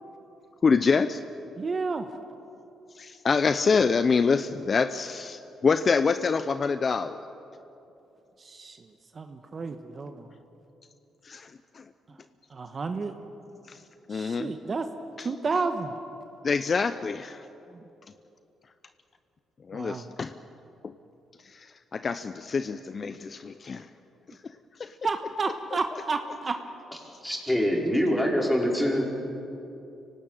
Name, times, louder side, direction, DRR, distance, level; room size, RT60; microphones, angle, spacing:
voice 1, 0.6-1.2 2.9-7.2 11.2-11.8 14.1-14.5 15.2-15.3 16.5-17.4 19.7-20.3 20.8-20.9 21.4-23.9 24.3-24.5 24.8-25.0 25.9-26.0, left 5 dB, 40° left, 11 dB, 0.7 m, -26 dB
voice 2, 1.6-2.0 8.4-8.8 9.1-10.1 12.5-13.1 14.1-14.8 15.2-15.9 19.7-20.1 25.0-26.5, right 4 dB, 40° right, 7 dB, 1.3 m, -31 dB
voice 3, 27.2-29.0, equal, 5° left, -1 dB, 5.1 m, -24 dB
24.5 x 18.0 x 9.1 m, 2.8 s
cardioid pair, 90°, 0 cm